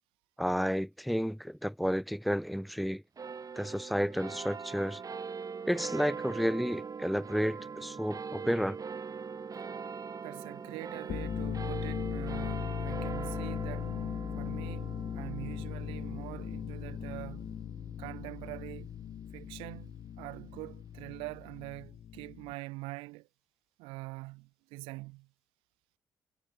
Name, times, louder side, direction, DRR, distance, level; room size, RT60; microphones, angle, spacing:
voice 1, 0.4-3.0 3.6-5.0 5.7-8.8, equal, ahead, 2.1 m, -31 dB
sound 1, 3.2-19.9, right 5 dB, 40° right, 2.4 m, -42 dB
voice 2, 10.2-13.9 14.4-17.6 18.0-18.9 19.3-23.3 23.8-25.3, right 24 dB, 70° right, 3.3 m, -44 dB
sound 2, 11.0-22.5, left 9 dB, 55° left, 2.2 m, -38 dB
figure-of-eight pair, 45°, 9 cm